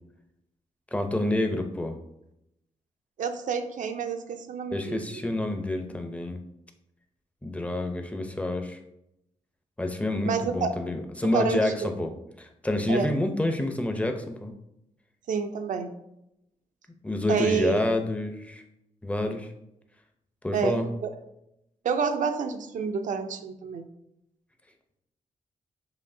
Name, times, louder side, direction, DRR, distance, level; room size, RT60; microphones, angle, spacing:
voice 1, 0.9-2.0 4.7-6.4 7.4-8.8 9.8-12.1 12.4-14.5 17.0-18.6 19.0-19.5 20.4-20.9, left 1 dB, 10° left, 5 dB, 0.6 m, -28 dB
voice 2, 3.2-5.2 10.2-10.7 11.3-11.9 12.9-13.1 15.3-15.9 17.3-17.8 20.5-21.1 21.8-23.9, right 6 dB, 75° right, 7 dB, 0.5 m, -29 dB
7.0 x 2.8 x 2.7 m, 0.83 s
cardioid pair, 85°, 13 cm